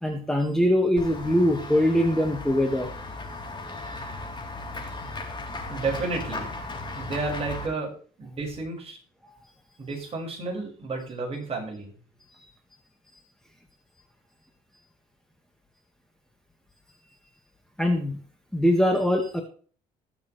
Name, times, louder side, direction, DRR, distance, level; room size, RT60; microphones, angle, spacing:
voice 1, 0.0-2.9 17.8-18.2 18.5-19.4, equal, 5° left, 3 dB, 1.8 m, -22 dB
Run / Walk footsteps / Bell, 1.0-7.7, left 2 dB, 25° left, 3.6 m, -36 dB
voice 2, 5.7-6.5 6.9-9.0 9.8-11.9, right 3 dB, 35° right, -1 dB, 6.2 m, -32 dB
20.0 x 7.1 x 3.3 m, 0.42 s
cardioid pair, 110°, 17 cm